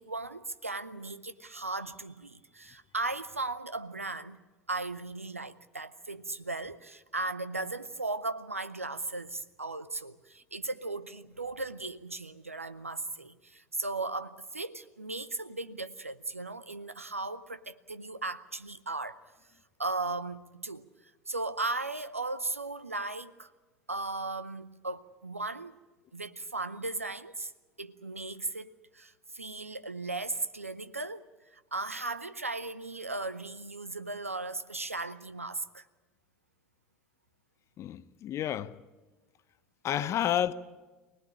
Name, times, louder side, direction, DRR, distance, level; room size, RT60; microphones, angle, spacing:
voice 1, 0.0-4.4 4.7-19.2 19.8-20.9 21.3-23.5 23.9-25.8 26.1-27.5 27.8-35.9 40.0-40.1, right 2 dB, 90° right, 0.7 m, -37 dB
voice 2, 37.8-38.8 39.8-40.5, left 11 dB, 40° left, 0.9 m, -30 dB
24.0 x 19.0 x 8.7 m
figure-of-eight pair, 65°, 7 cm